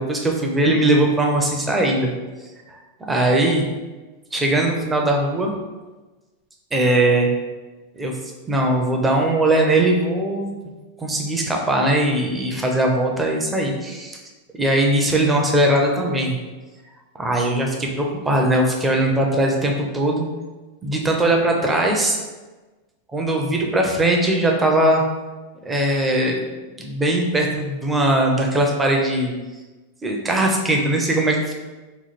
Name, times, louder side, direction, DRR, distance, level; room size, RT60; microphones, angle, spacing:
voice 1, 0.0-2.1 2.4-2.8 3.1-3.6 4.3-5.5 6.7-7.3 7.9-8.1 8.5-10.5 11.0-14.2 14.5-16.4 17.2-20.3 20.8-22.2 23.1-25.0 25.6-26.4 26.8-29.3 30.0-31.5, right 1 dB, 10° right, 1 dB, 0.5 m, -20 dB
3.1 x 2.2 x 4.2 m, 1.2 s
supercardioid pair, 150°, 0 cm